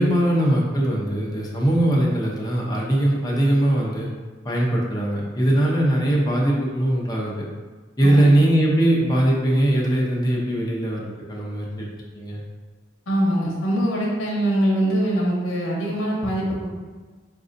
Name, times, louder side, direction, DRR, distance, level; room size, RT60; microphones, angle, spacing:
voice 1, 0.0-4.1 4.4-7.4 8.0-11.0 11.3-11.8 12.1-12.4, right 1 dB, 20° left, -4 dB, 0.7 m, -20 dB
voice 2, 8.0-8.3 13.1-16.7, right 1 dB, 80° left, -4 dB, 0.9 m, -23 dB
5.3 x 2.5 x 2.6 m, 1.3 s
head